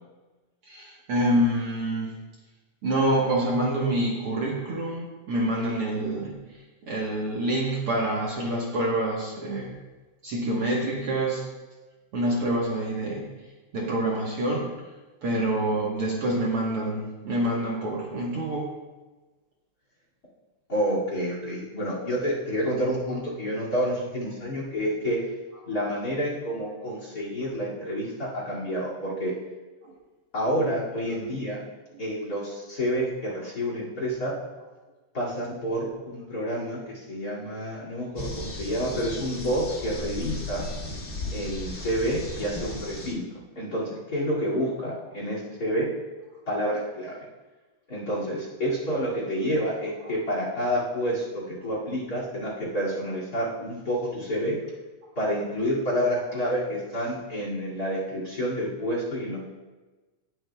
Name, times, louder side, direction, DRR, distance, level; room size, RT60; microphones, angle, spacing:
voice 1, 0.6-2.1 2.8-9.7 10.2-11.4 12.1-13.2 13.7-14.7 15.2-18.7 29.8-29.9 31.1-31.2 56.3-56.4, right 1 dB, 55° right, -3 dB, 1.9 m, -27 dB
voice 2, 20.7-25.2 25.7-29.3 30.3-31.6 32.0-34.3 35.1-40.7 41.3-43.2 43.6-45.9 46.5-47.2 47.9-54.6 55.2-59.4, equal, 35° left, -4 dB, 2.6 m, -29 dB
sound 1, 38.2-43.1, left 1 dB, 50° left, 0.6 m, -36 dB
18.5 x 7.8 x 2.3 m, 1.2 s
omnidirectional pair, 3.4 m